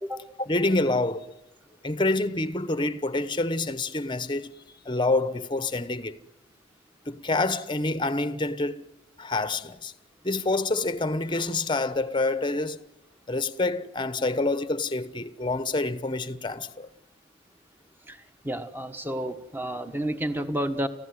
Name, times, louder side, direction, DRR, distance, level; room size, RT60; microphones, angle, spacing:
voice 1, 0.4-1.3 1.8-4.5 4.8-6.2 7.1-8.9 9.2-9.9 10.2-12.8 13.3-16.9, left 2 dB, 25° left, 1.0 m, -27 dB
voice 2, 18.4-20.9, right 1 dB, 10° right, 1.4 m, -30 dB
30.0 x 15.5 x 9.6 m
head